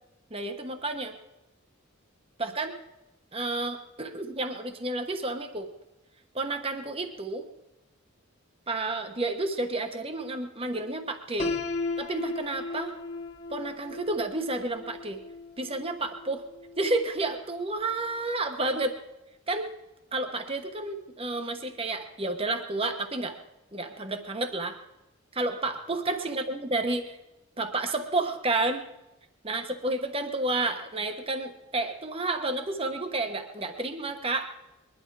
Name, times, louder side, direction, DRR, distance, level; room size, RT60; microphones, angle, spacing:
voice 1, 0.3-1.1 2.4-2.8 3.3-5.7 6.3-7.4 8.7-11.5 12.0-12.9 13.5-15.2 15.6-16.4 16.8-18.9 19.5-19.7 20.1-23.4 23.7-24.8 25.3-27.2 27.6-28.8 29.4-34.4, right 2 dB, 25° right, 6 dB, 1.2 m, -30 dB
Piano, 11.4-17.3, left 3 dB, 35° left, 1.4 m, -36 dB
21.5 x 11.5 x 4.8 m, 0.97 s
head